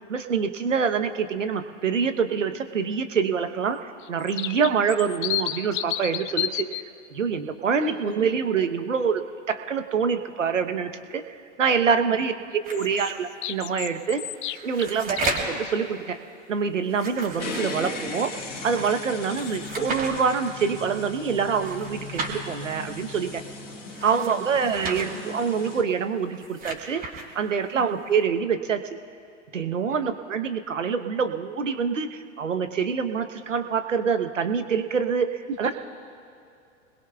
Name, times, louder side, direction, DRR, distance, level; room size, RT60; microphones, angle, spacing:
voice 1, 0.1-6.8 7.1-9.2 9.5-12.3 12.7-14.2 14.6-15.2 15.5-16.2 16.5-18.3 18.6-23.4 24.0-27.0 27.3-28.8 29.5-35.8, right 6 dB, 80° right, 9 dB, 1.0 m, -26 dB
sound 1, 4.0-6.8 12.7-15.6, left 13 dB, 45° left, 0.5 m, -32 dB
voice 2, 7.8-8.3 12.1-12.2 14.9-15.1 24.2-24.5 27.7-27.9 29.9-30.1 35.5-35.8, right 4 dB, 45° right, -3 dB, 2.1 m, -38 dB
sound 2, 12.6-13.1 14.3-15.6 16.8-18.1 19.3-20.1 21.5-22.4 23.9-25.0 26.2-27.3, right 3 dB, 25° right, 3.0 m, -34 dB
sound 3, 17.4-25.8, left 3 dB, 70° left, 3.0 m, -37 dB
27.0 x 21.0 x 2.3 m, 2.5 s
figure-of-eight pair, 95°, 37 cm